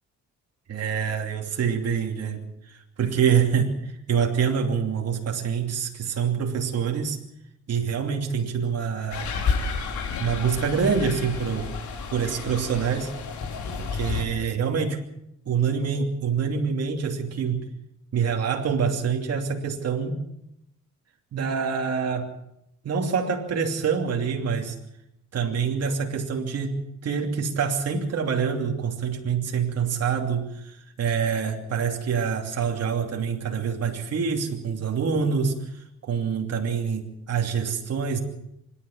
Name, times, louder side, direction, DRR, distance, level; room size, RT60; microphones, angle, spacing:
voice 1, 0.7-7.2 7.7-9.3 10.2-11.7 12.1-13.1 13.8-15.0 15.5-17.7 18.1-20.2 21.3-22.3 22.8-24.8 25.3-38.2, right 6 dB, 55° right, 1 dB, 2.9 m, -26 dB
sound 1, 9.1-14.2, left 5 dB, 75° left, 4.8 m, -31 dB
25.5 x 11.5 x 9.3 m, 0.82 s
cardioid pair, 90°, 30 cm